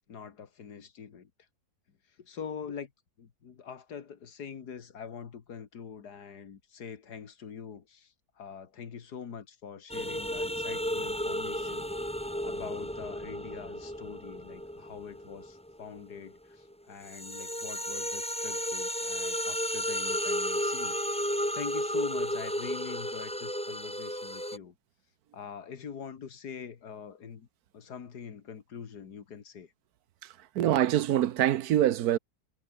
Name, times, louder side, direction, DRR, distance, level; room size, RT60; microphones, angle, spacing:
voice 1, 0.1-1.3 2.2-2.9 3.2-11.9 12.4-21.0 21.5-24.7 25.3-27.5 27.7-29.7, left 7 dB, 90° left, 2.3 m, -44 dB
sound 1, 9.9-16.3 16.7-24.6, equal, 5° left, 2.6 m, -33 dB
voice 2, 30.5-32.2, right 12 dB, 75° right, 1.3 m, -24 dB
omnidirectional pair, 1.7 m